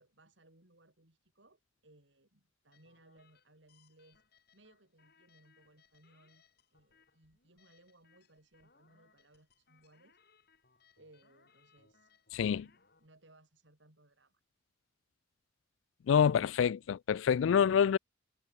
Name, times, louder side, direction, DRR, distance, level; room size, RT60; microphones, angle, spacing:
voice 1, 0.0-6.4 6.7-10.2 11.0-12.1 12.5-14.4, right 1 dB, 70° right, 4.7 m, -64 dB
sound 1, 2.7-13.1, left 5 dB, 55° left, 8.0 m, -69 dB
voice 2, 12.3-12.7 16.1-18.0, left 7 dB, 85° left, 0.3 m, -27 dB
head